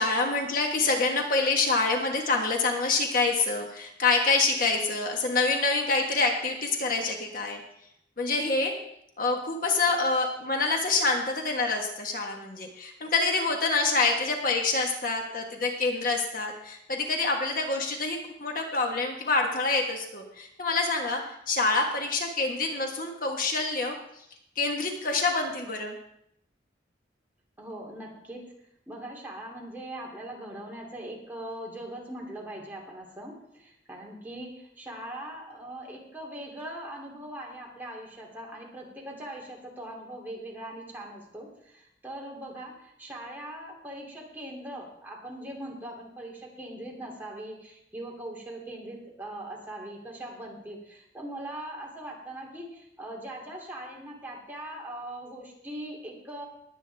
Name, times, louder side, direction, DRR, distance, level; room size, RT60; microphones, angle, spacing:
voice 1, 0.0-7.6 8.2-8.8 9.2-23.9 24.6-26.0, left 3 dB, 50° left, 2 dB, 1.4 m, -26 dB
voice 2, 27.6-28.4 28.9-56.5, right 1 dB, 10° right, -2 dB, 2.8 m, -41 dB
20.0 x 8.6 x 3.5 m, 0.75 s
head